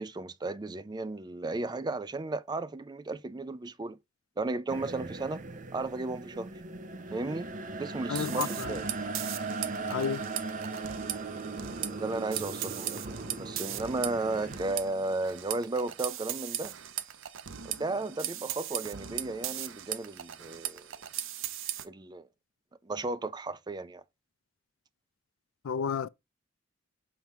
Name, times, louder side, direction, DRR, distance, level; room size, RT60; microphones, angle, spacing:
voice 1, 0.0-4.0 4.4-5.4 5.7-6.5 7.1-7.5 7.8-8.9 11.9-16.8 17.6-20.9 21.8-22.3 22.8-24.0, right 2 dB, 20° right, 0.4 m, -34 dB
sound 1, 4.7-14.6, right 3 dB, 40° right, 0.8 m, -38 dB
voice 2, 8.1-8.8 9.9-10.2 25.6-26.1, left 6 dB, 80° left, 0.4 m, -31 dB
sound 2, 8.1-21.9, right 11 dB, 85° right, 0.7 m, -38 dB
5.9 x 5.8 x 3.5 m
head